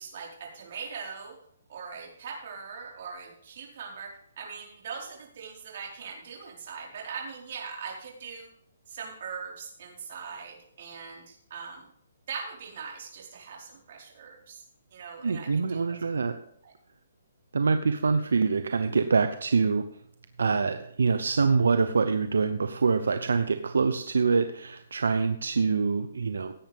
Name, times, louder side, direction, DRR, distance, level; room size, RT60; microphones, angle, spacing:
voice 1, 0.0-1.4 1.7-8.5 8.9-11.9 12.3-14.6 14.9-16.0 16.6-16.7, right 6 dB, 50° right, -2 dB, 4.6 m, -41 dB
voice 2, 15.2-16.4 17.5-19.9 20.4-26.5, right 4 dB, 85° right, 9 dB, 0.8 m, -25 dB
17.0 x 8.8 x 3.6 m, 0.67 s
hypercardioid pair, 155°, 0 cm